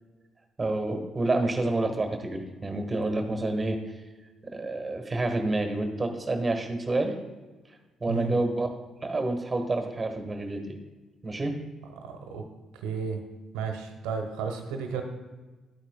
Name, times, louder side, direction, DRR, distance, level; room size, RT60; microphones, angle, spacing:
voice 1, 0.6-3.8 4.4-7.1 8.0-8.7 9.0-10.8 11.2-11.5, right 2 dB, 25° right, 5 dB, 1.4 m, -28 dB
voice 2, 12.0-12.4 12.8-13.2 13.5-15.0, right 5 dB, 75° right, 4 dB, 0.9 m, -33 dB
11.5 x 9.0 x 2.3 m, 1.3 s
hypercardioid pair, 45°, 0 cm